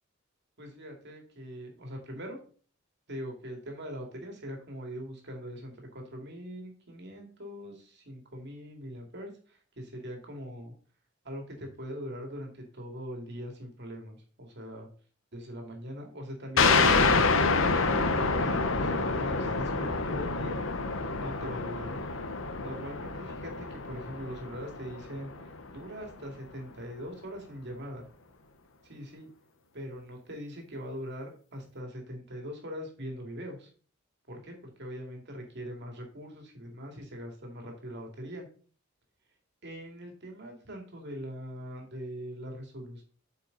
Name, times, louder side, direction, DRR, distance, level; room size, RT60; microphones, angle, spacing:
voice 1, 0.6-2.4 3.1-10.7 11.2-14.9 15.3-17.0 17.5-18.1 18.4-20.6 21.2-21.9 22.6-28.0 28.8-29.3 29.7-33.7 34.3-38.5 39.6-43.0, equal, 55° right, 2 dB, 2.3 m, -42 dB
sound 1, 16.6-25.8, left 4 dB, 65° left, 0.9 m, -27 dB
8.4 x 5.4 x 3.9 m, 0.42 s
head